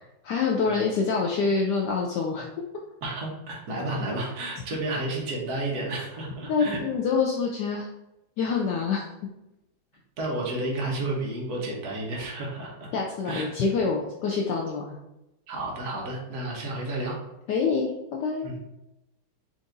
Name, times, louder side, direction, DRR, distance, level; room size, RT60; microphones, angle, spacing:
voice 1, 0.2-2.4 6.5-7.9 8.4-9.0 12.9-15.0 17.5-17.9 18.2-18.5, left 5 dB, 75° left, -1 dB, 1.0 m, -26 dB
voice 2, 3.0-6.8 10.2-12.9 13.2-13.5 15.5-17.2 18.4-18.6, right 2 dB, 55° right, -2 dB, 1.4 m, -31 dB
4.7 x 2.6 x 3.8 m, 0.92 s
omnidirectional pair, 2.3 m